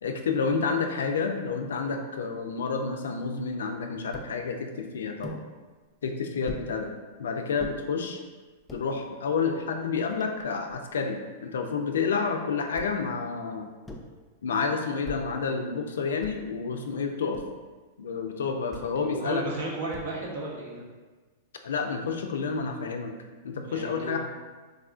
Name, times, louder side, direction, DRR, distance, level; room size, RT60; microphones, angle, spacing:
voice 1, 0.0-5.4 6.0-6.9 7.2-8.2 8.7-13.7 14.4-17.4 18.0-19.4 21.6-23.1 23.4-24.2, left 5 dB, 85° left, 4 dB, 0.3 m, -29 dB
sound 1, 4.1-4.4 5.2-5.5 6.5-6.7 7.6-7.8 8.5-8.9 9.6-9.7 9.9-10.9 12.8-13.1 13.9-14.2 15.0-15.4 16.2-16.6 17.3-17.7 18.7-19.0 19.9-20.4, equal, 10° left, 0.4 m, -42 dB
voice 2, 19.0-20.8 23.7-24.2, right 2 dB, 70° right, -2 dB, 0.8 m, -34 dB
3.4 x 2.4 x 2.4 m, 1.3 s
hypercardioid pair, 125°, 0 cm